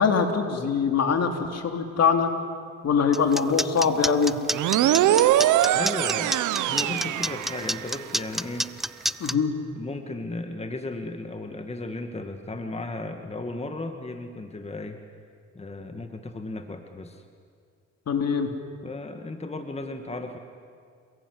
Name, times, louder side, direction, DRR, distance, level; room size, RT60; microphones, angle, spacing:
voice 1, 0.0-2.3 2.8-4.3 9.2-9.5 18.1-18.5, left 6 dB, 55° left, 5 dB, 3.4 m, -23 dB
sound 1, 3.1-9.3, equal, ahead, 0.7 m, -28 dB
sound 2, 4.5-8.0, right 13 dB, 80° right, 1.0 m, -22 dB
voice 2, 5.7-6.4 6.7-8.7 9.8-15.0 15.5-17.2 18.8-20.4, left 2 dB, 20° left, 6 dB, 2.0 m, -35 dB
27.0 x 22.0 x 9.9 m, 2.2 s
cardioid pair, 90°, 30 cm